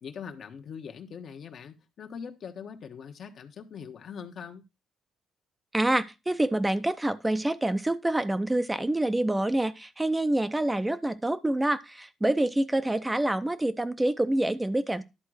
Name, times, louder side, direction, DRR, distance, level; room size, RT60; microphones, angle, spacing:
voice 1, 0.0-4.6, left 7 dB, 60° left, 1.2 m, -42 dB
voice 2, 5.7-15.0, right 1 dB, 15° right, 0.6 m, -27 dB
11.5 x 3.8 x 6.2 m
cardioid pair, 90°, 0 cm